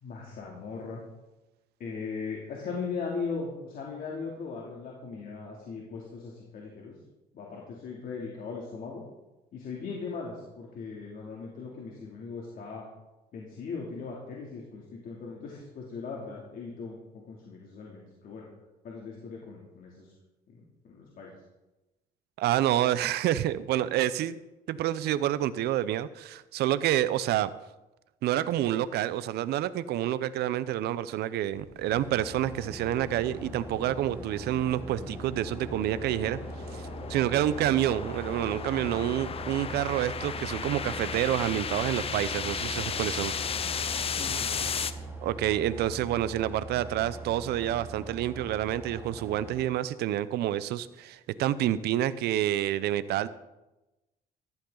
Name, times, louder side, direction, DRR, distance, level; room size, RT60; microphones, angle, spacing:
voice 1, 0.0-1.0 1.8-6.9 7.3-9.0 9.5-12.9 13.3-18.4 18.8-20.1 20.5-21.3 39.6-39.8 44.2-44.6, left 4 dB, 60° left, -2 dB, 2.8 m, -39 dB
voice 2, 22.4-24.4 24.7-27.5 28.2-36.4 36.7-36.8 37.1-43.3 45.2-53.3, right 12 dB, 75° right, 15 dB, 0.7 m, -28 dB
sound 1, 31.5-44.9, left 7 dB, 35° left, 0.7 m, -36 dB
sound 2, 31.9-49.6, right 3 dB, 10° right, 3.4 m, -42 dB
14.5 x 13.0 x 3.9 m, 1.0 s
cardioid pair, 110°, 17 cm